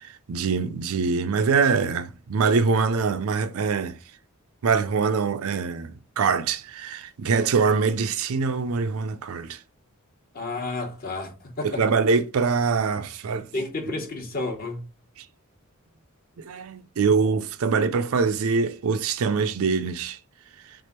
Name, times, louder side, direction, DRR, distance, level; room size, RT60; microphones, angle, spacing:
voice 1, 0.0-4.0 4.6-9.6 11.6-13.5 16.4-20.2, right 5 dB, 70° right, 0.4 m, -24 dB
voice 2, 10.3-11.8 13.5-14.8, left 2 dB, 40° left, 1.0 m, -31 dB
3.6 x 3.4 x 4.3 m
head